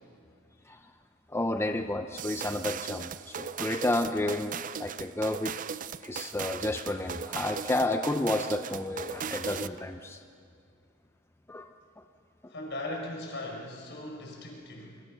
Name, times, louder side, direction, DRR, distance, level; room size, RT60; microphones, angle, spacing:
voice 1, 1.3-5.5 6.0-10.2 11.5-11.7, left 1 dB, 10° left, 6 dB, 0.6 m, -31 dB
sound 1, 2.2-9.8, right 7 dB, 40° right, 0.5 m, -38 dB
voice 2, 12.5-15.0, left 1 dB, 60° left, 0 dB, 5.4 m, -39 dB
27.0 x 24.5 x 6.3 m, 2.3 s
head